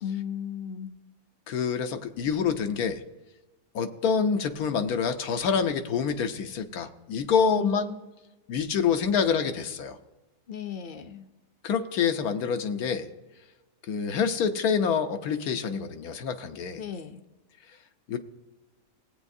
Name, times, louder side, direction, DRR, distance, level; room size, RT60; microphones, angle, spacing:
voice 1, 0.0-0.9 7.6-8.0 10.5-11.3 16.8-17.2, left 10 dB, 55° left, 8 dB, 0.6 m, -34 dB
voice 2, 1.5-3.0 3.7-7.9 8.5-10.0 11.6-13.1 13.9-16.8 18.1-18.2, left 6 dB, 90° left, 7 dB, 1.3 m, -26 dB
18.5 x 8.4 x 2.7 m, 1.1 s
omnidirectional pair, 1.5 m